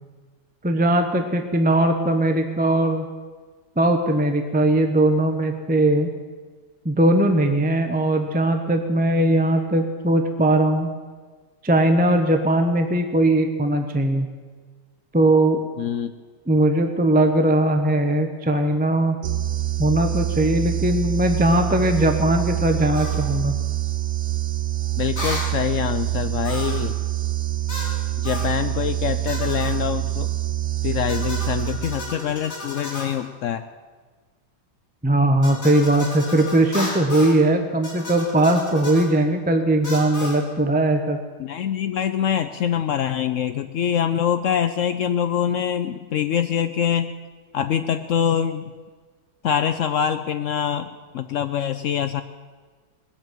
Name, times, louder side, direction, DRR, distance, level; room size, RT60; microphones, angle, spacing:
voice 1, 0.6-3.1 3.8-6.1 6.8-10.9 11.6-14.3 15.1-15.6 16.5-19.2 19.8-23.5 35.0-41.2, right 1 dB, 10° right, 5 dB, 0.6 m, -19 dB
voice 2, 15.8-16.1 25.0-26.9 28.2-30.3 30.8-33.6 41.4-47.1 47.5-48.7 49.4-52.2, left 9 dB, 85° left, 9 dB, 0.7 m, -24 dB
sound 1, 19.2-32.4, right 14 dB, 65° right, 0.8 m, -26 dB
sound 2, 22.9-23.2 25.2-25.5 26.4-26.9 27.7-28.0 28.3-28.5 29.3-29.8 31.1-33.2 35.4-37.4 37.8-39.1 39.8-40.4, left 1 dB, 35° left, 4.3 m, -33 dB
20.0 x 7.3 x 9.1 m, 1.5 s
omnidirectional pair, 2.0 m